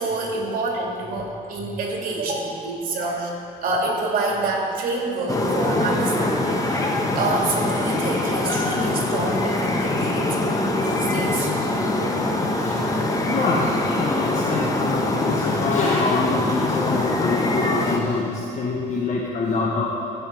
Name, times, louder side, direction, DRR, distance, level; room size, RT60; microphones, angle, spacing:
voice 1, 0.0-3.3 3.6-6.9 7.1-11.5, right 2 dB, 55° right, -1 dB, 2.4 m, -27 dB
sound 1, 5.3-18.0, left 2 dB, 20° left, 1.0 m, -23 dB
voice 2, 13.1-19.9, left 3 dB, 45° left, -3 dB, 1.1 m, -25 dB
15.5 x 5.7 x 4.5 m, 2.7 s
cardioid pair, 110°, 17 cm